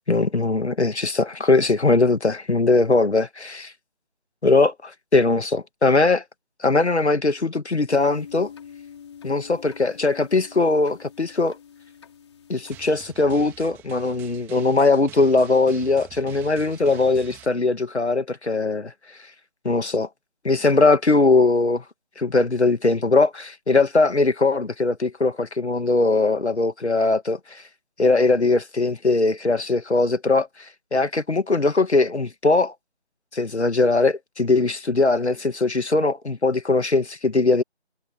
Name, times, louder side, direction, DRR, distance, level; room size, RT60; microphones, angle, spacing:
voice 1, 0.1-3.7 4.4-6.2 6.6-8.5 9.2-11.5 12.5-18.9 19.6-20.1 20.4-21.8 22.2-27.6 28.0-30.5 30.9-32.7 33.3-37.6, left 3 dB, 80° left, 2.4 m, -20 dB
sound 1, 7.9-13.0, left 8 dB, 25° left, 4.8 m, -45 dB
Drum, 12.7-17.5, right 15 dB, 5° right, 3.2 m, -46 dB
figure-of-eight pair, 165°, 33 cm